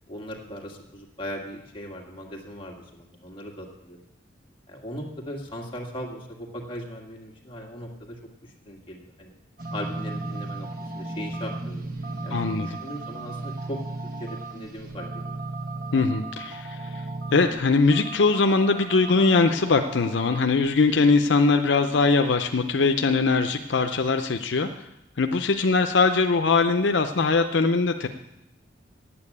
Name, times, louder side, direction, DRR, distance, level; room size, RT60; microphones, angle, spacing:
voice 1, 0.1-4.0 4.7-9.3 9.7-10.7 10.9-11.9 12.2-13.8 14.2-15.4, equal, 30° left, 0 dB, 2.0 m, -38 dB
sound 1, 9.6-23.4, right 2 dB, 50° right, 1.3 m, -36 dB
voice 2, 12.3-12.7 15.9-16.8 17.3-24.7 25.2-28.1, left 4 dB, 80° left, 7 dB, 0.6 m, -21 dB
8.8 x 8.8 x 8.5 m, 0.86 s
head